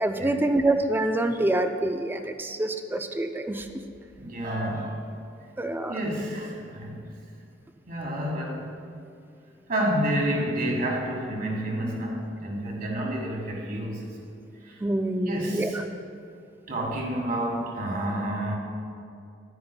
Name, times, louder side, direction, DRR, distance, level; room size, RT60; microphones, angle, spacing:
voice 1, 0.0-3.7 5.6-6.0 14.8-15.9, right 1 dB, 10° right, 7 dB, 0.4 m, -26 dB
voice 2, 4.2-5.0 5.9-7.1 7.9-8.7 9.7-14.3 14.6-14.8 15.2-15.8 16.7-18.6, right 1 dB, 50° right, -1 dB, 1.6 m, -29 dB
11.0 x 9.4 x 2.2 m, 2.5 s
head